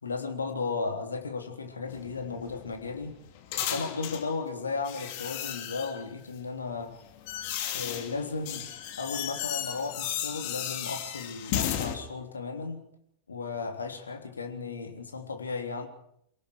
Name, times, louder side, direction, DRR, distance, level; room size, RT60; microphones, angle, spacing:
voice 1, 0.0-3.2 3.6-7.0 7.7-12.8 13.3-15.9, left 4 dB, 75° left, 4 dB, 3.4 m, -35 dB
sound 1, 1.9-4.3 4.9-6.1 6.8-12.0, left 11 dB, 45° left, 2.7 m, -34 dB
28.5 x 18.5 x 5.0 m, 0.70 s
figure-of-eight pair, 90°, 0 cm